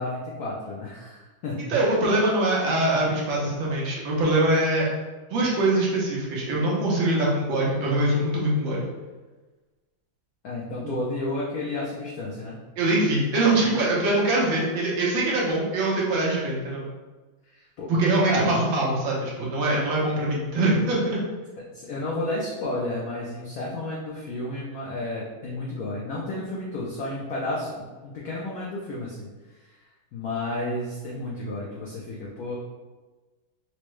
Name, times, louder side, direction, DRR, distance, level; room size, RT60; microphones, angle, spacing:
voice 1, 0.0-1.6 10.4-12.6 17.5-17.9 18.3-18.5 21.7-29.3 30.1-32.5, left 2 dB, 85° left, -4 dB, 0.8 m, -31 dB
voice 2, 1.7-4.9 5.3-8.8 10.8-10.9 12.8-16.8 17.9-21.2, right 2 dB, 70° right, -4 dB, 1.5 m, -23 dB
4.6 x 2.0 x 3.1 m, 1.3 s
omnidirectional pair, 2.3 m